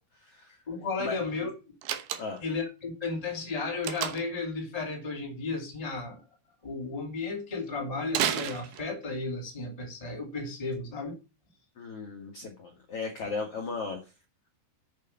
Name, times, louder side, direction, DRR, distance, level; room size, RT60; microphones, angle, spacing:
voice 1, 0.1-0.6 1.0-1.2 2.2-2.4 11.8-14.0, left 4 dB, 50° left, 1.8 m, -36 dB
voice 2, 0.7-1.5 2.4-6.2 6.6-11.2, left 3 dB, 10° left, 1.8 m, -34 dB
Slam, 1.8-2.6 3.8-4.4 8.1-9.2, right 11 dB, 75° right, 2.5 m, -31 dB
8.4 x 6.5 x 6.4 m
omnidirectional pair, 4.9 m